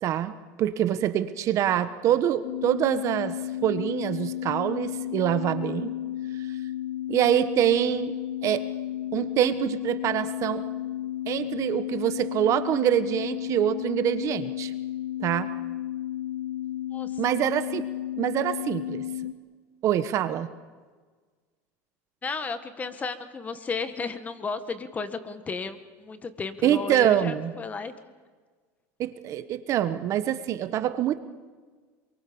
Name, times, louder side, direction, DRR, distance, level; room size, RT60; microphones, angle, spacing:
voice 1, 0.0-3.4 3.6-6.0 7.1-8.1 8.4-8.6 9.1-10.7 11.3-14.7 15.2-15.5 17.2-17.9 18.2-19.0 19.8-20.5 26.6-27.5 29.0-31.2, right 11 dB, 45° right, 11 dB, 1.3 m, -25 dB
sound 1, 2.4-19.3, left 12 dB, 65° left, 1.5 m, -33 dB
voice 2, 16.9-17.2 22.2-27.9, left 4 dB, 20° left, 10 dB, 1.7 m, -34 dB
27.5 x 23.5 x 7.1 m, 1.4 s
supercardioid pair, 130°, 7 cm